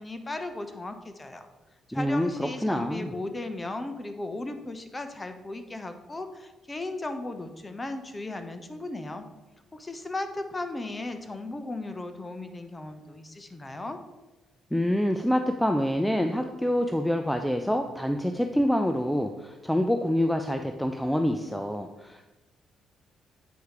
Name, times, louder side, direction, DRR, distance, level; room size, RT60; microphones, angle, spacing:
voice 1, 0.0-1.5 1.9-9.3 9.7-14.0, left 2 dB, 20° left, 8 dB, 0.9 m, -36 dB
voice 2, 1.9-3.1 14.7-22.3, equal, 5° left, 5 dB, 0.5 m, -26 dB
8.2 x 4.8 x 4.8 m, 1.1 s
cardioid pair, 90°, 0 cm